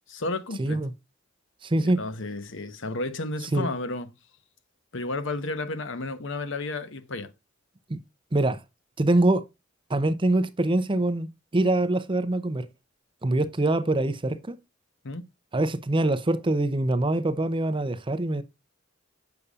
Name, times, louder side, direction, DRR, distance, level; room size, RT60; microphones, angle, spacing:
voice 1, 0.1-0.8 1.8-4.1 4.9-7.3 15.0-15.2, left 2 dB, 65° left, 1.0 m, -32 dB
voice 2, 0.6-0.9 1.6-2.0 3.5-3.7 7.9-8.0 8.3-8.6 9.0-9.4 9.9-12.7 13.2-14.6 15.5-18.4, right 2 dB, 25° right, 0.6 m, -24 dB
8.3 x 6.7 x 2.4 m
head